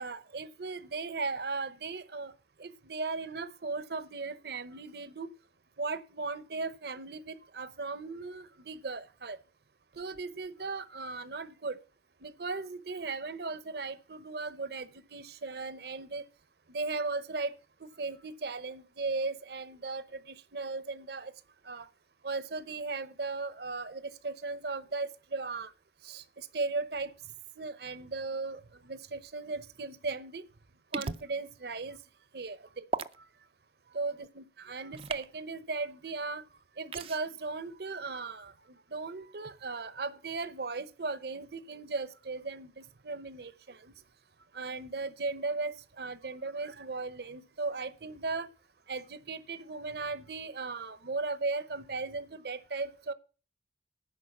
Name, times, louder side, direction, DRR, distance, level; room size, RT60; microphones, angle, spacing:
voice 1, 0.0-2.3 2.6-5.3 5.8-9.4 10.0-11.8 12.2-16.2 16.7-17.5 17.8-21.3 21.6-21.9 22.2-25.7 26.0-27.1 27.6-30.4 30.9-32.0 32.3-32.8 33.9-36.4 36.8-38.5 38.9-43.9 44.5-48.5 48.9-53.1, right 3 dB, 60° right, 0.8 m, -37 dB
sound 1, 30.9-31.3 32.9-33.2 34.9-35.3 36.9-37.2, right 4 dB, 30° right, 0.4 m, -35 dB
10.5 x 5.2 x 7.0 m
head